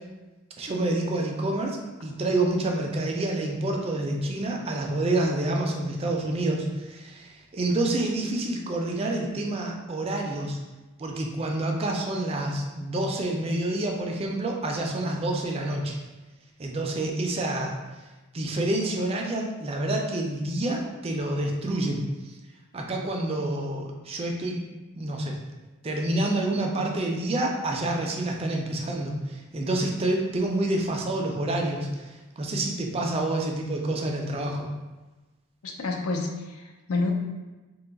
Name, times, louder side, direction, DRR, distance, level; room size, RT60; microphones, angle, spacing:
voice 1, 0.6-10.6 11.0-16.0 16.6-17.8 18.3-22.3 22.7-24.7 25.0-25.4 25.8-34.7, right 1 dB, 25° right, 1 dB, 0.3 m, -28 dB
voice 2, 35.6-37.1, left 3 dB, 85° left, 2 dB, 0.5 m, -29 dB
2.8 x 2.3 x 3.8 m, 1.2 s
head